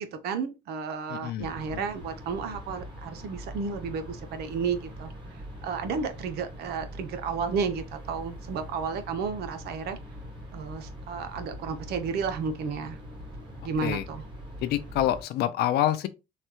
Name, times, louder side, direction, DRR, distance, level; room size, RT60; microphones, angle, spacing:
voice 1, 0.0-5.1 5.6-10.0 10.5-13.0 13.6-14.2, right 5 dB, 75° right, 0.6 m, -32 dB
voice 2, 1.1-1.9 13.8-14.0 14.6-16.1, left 12 dB, 75° left, 0.4 m, -27 dB
sound 1, 1.4-15.2, equal, 30° right, 1.6 m, -42 dB
3.2 x 2.2 x 2.9 m
cardioid pair, 110°, 17 cm